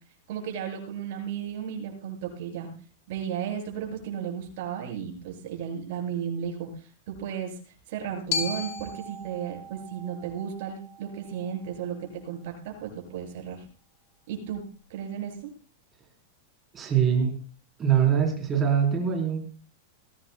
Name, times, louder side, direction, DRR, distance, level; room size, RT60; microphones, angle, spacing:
voice 1, 0.3-2.7 3.1-6.7 7.1-7.6 7.9-13.6 14.3-14.6 14.9-15.5, right 8 dB, 55° right, 0 dB, 7.5 m, -34 dB
Glockenspiel, 8.3-12.4, left 5 dB, 45° left, 2.6 m, -37 dB
voice 2, 16.7-17.3 17.8-19.4, right 8 dB, 15° right, 1 dB, 4.1 m, -23 dB
21.5 x 17.5 x 2.3 m, 0.39 s
supercardioid pair, 165°, 0 cm